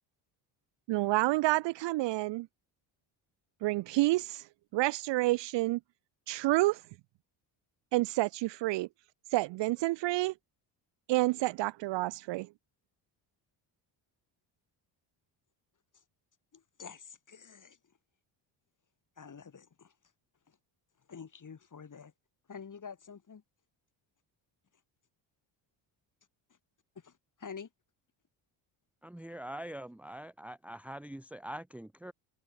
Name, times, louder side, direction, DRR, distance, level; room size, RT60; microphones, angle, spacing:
voice 1, 0.9-2.5 3.6-4.4 4.7-5.8 6.3-6.8 7.9-8.9 9.3-10.3 11.1-12.5, right 19 dB, 60° right, 0.5 m, -29 dB
voice 2, 16.5-17.8 19.2-19.9 21.1-22.1 22.5-23.4 27.0-27.1 27.4-27.7, left 6 dB, 40° left, 6.0 m, -47 dB
voice 3, 29.0-32.1, right 1 dB, 5° right, 0.9 m, -43 dB
supercardioid pair, 75°, 49 cm